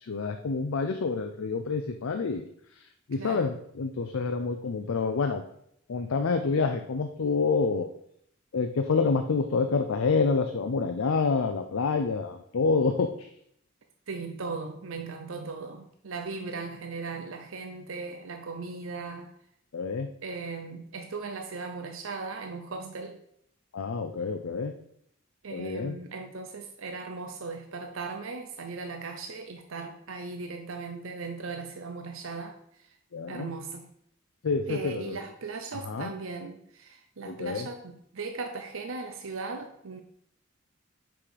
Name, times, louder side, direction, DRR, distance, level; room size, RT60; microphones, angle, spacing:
voice 1, 0.0-2.4 2.7-2.8 3.1-5.4 5.9-7.9 8.5-13.3 19.7-20.1 23.7-24.7 25.5-26.0 33.1-33.5 34.4-35.2 35.8-36.1 37.2-37.7, left 4 dB, 90° left, 0.5 m, -28 dB
voice 2, 3.2-3.5 14.1-19.3 20.2-23.2 25.4-32.6 33.3-33.9 34.7-40.0, right 4 dB, 80° right, 0.7 m, -38 dB
6.0 x 5.0 x 4.9 m
head